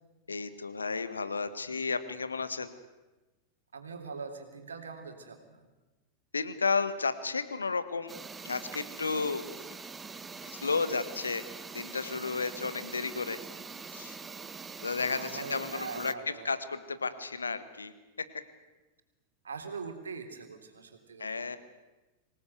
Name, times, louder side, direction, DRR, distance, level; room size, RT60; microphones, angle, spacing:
voice 1, 0.3-2.7 6.3-8.2 8.4-9.4 10.5-11.4 11.7-13.4 13.9-14.2 14.8-18.3 21.2-21.6, left 4 dB, 75° left, 12 dB, 1.5 m, -33 dB
voice 2, 3.7-5.7 15.1-16.5 19.4-21.5, right 5 dB, 70° right, 5 dB, 3.3 m, -42 dB
sound 1, 8.1-16.1, right 4 dB, 15° right, 1.1 m, -44 dB
25.5 x 18.5 x 8.0 m, 1.1 s
figure-of-eight pair, 90°, 0 cm